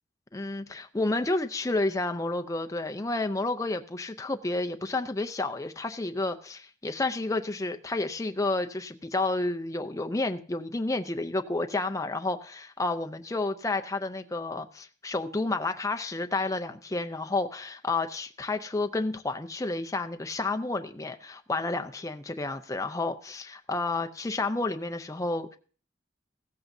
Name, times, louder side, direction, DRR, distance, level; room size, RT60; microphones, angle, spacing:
voice 1, 0.3-25.6, left 2 dB, 20° left, 6 dB, 0.5 m, -30 dB
15.5 x 14.0 x 2.7 m, 0.43 s
head